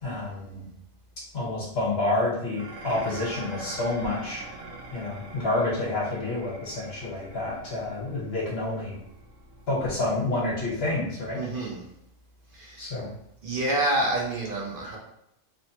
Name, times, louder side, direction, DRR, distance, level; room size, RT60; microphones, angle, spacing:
voice 1, 0.0-0.7 1.3-4.4 4.9-9.0 9.7-11.4 12.8-13.1, left 2 dB, 50° left, -6 dB, 1.3 m, -29 dB
Dishes pots and pans, 2.6-11.4, right 2 dB, 85° right, 1.0 m, -44 dB
voice 2, 11.3-11.8 12.5-12.9 13.4-15.0, right 1 dB, 55° right, -2 dB, 0.6 m, -28 dB
3.0 x 2.0 x 2.8 m, 0.77 s
omnidirectional pair, 1.4 m